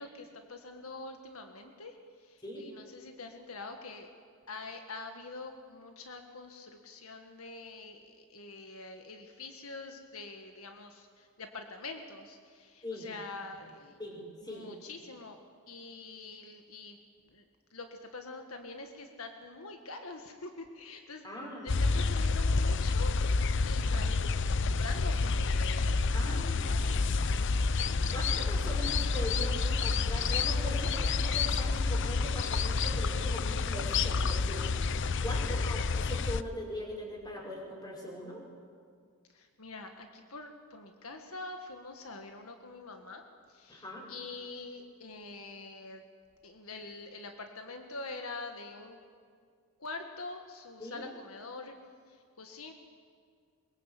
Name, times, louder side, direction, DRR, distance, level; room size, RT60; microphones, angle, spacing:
voice 1, 0.0-4.1 4.5-14.0 14.5-15.4 15.7-17.0 17.3-17.4 17.7-21.3 21.6-25.9 26.3-28.0 35.4-35.7 39.3-46.1 46.4-49.0 49.8-51.7 52.1-52.7, left 3 dB, 75° left, 5 dB, 1.7 m, -45 dB
voice 2, 14.0-14.7 21.2-21.8 26.1-26.9 27.9-38.4 43.7-44.1 50.8-51.0, equal, 20° left, -1 dB, 5.6 m, -41 dB
sound 1, 21.7-36.4, left 4 dB, 55° left, 0.6 m, -29 dB
22.5 x 22.0 x 8.4 m, 2.1 s
head